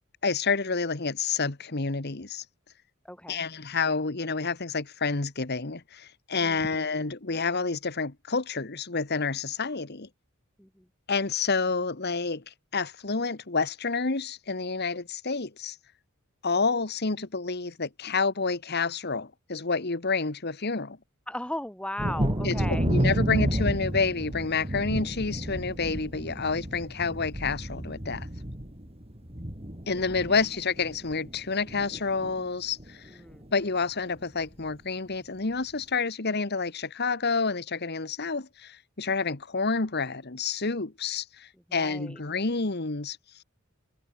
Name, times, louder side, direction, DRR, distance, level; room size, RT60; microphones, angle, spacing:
voice 1, 0.2-2.4 3.3-10.1 11.1-15.8 16.4-21.0 22.4-28.3 29.9-33.0 33.5-43.2, left 4 dB, 50° left, 1.5 m, -29 dB
voice 2, 3.0-3.4 6.4-7.0 10.6-10.8 21.3-22.9 33.1-33.4 41.7-42.2, left 1 dB, 5° left, 7.8 m, -37 dB
Thunder, 22.0-31.4 31.7-32.4 32.8-32.9 33.3-33.5, equal, 30° right, 4.2 m, -31 dB
head